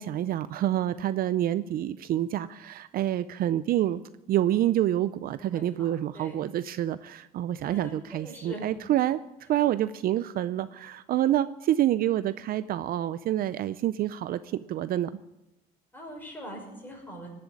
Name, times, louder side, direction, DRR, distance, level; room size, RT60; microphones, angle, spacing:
voice 1, 0.0-4.0 4.3-9.2 9.5-15.1, right 12 dB, 60° right, 15 dB, 0.5 m, -27 dB
voice 2, 5.5-6.4 7.6-8.7 15.9-17.3, equal, 10° left, -1 dB, 6.1 m, -43 dB
17.5 x 7.8 x 9.8 m, 0.98 s
cardioid pair, 110°, 17 cm